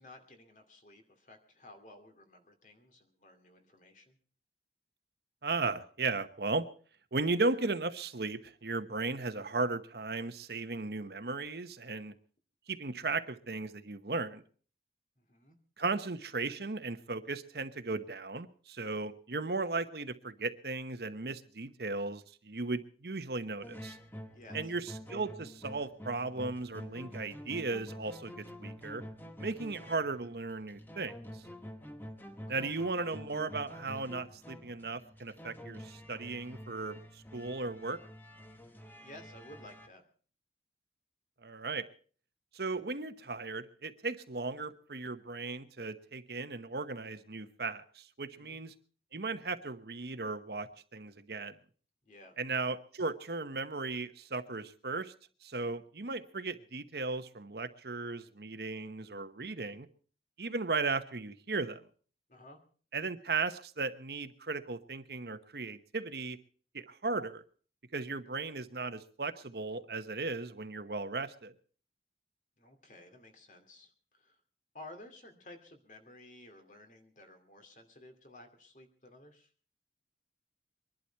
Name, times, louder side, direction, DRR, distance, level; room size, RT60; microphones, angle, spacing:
voice 1, 0.0-4.2 15.2-15.6 24.3-24.7 32.3-32.7 38.6-40.0 48.3-48.6 52.0-52.4 62.3-62.6 72.6-74.4 74.7-79.5, left 1 dB, 45° left, 6 dB, 2.4 m, -54 dB
voice 2, 5.4-6.7 7.1-12.1 12.7-14.4 15.8-24.0 24.5-29.0 29.4-31.4 32.5-38.0 41.4-41.9 42.5-48.7 49.1-51.5 52.4-55.1 55.4-59.9 60.4-61.8 62.9-66.4 66.7-67.4 67.9-71.5, right 3 dB, 65° right, 10 dB, 1.0 m, -36 dB
sound 1, 23.6-39.9, equal, 10° left, 1.1 m, -48 dB
23.0 x 11.5 x 4.5 m, 0.42 s
head